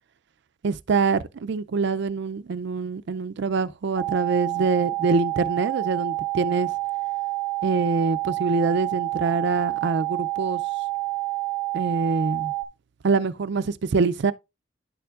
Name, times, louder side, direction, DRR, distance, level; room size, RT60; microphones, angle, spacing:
voice 1, 0.6-6.7 7.6-10.6 11.7-12.5 13.0-14.3, right 4 dB, 60° right, 0.4 m, -25 dB
sound 1, 4.0-12.6, right 18 dB, ahead, 1.3 m, -28 dB
10.0 x 6.8 x 2.4 m
head